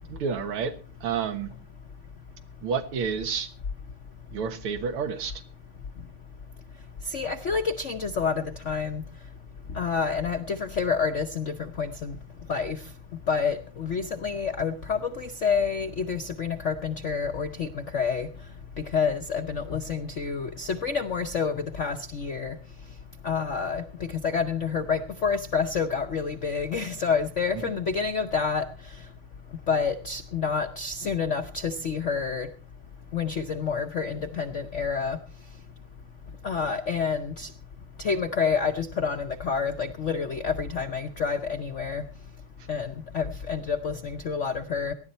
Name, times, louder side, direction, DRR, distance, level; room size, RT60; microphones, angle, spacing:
voice 1, 0.1-0.7 1.0-1.5 2.6-3.5 4.3-5.4 27.5-27.7, right 6 dB, 85° right, 8 dB, 2.3 m, -30 dB
voice 2, 7.1-9.0 9.7-12.2 12.5-12.8 13.3-18.3 18.8-22.6 23.2-28.7 29.7-32.5 33.1-35.2 36.4-37.5 38.0-42.0 42.7-44.9, left 5 dB, 65° left, 6 dB, 0.7 m, -28 dB
18.5 x 12.5 x 4.2 m, 0.37 s
omnidirectional pair, 2.4 m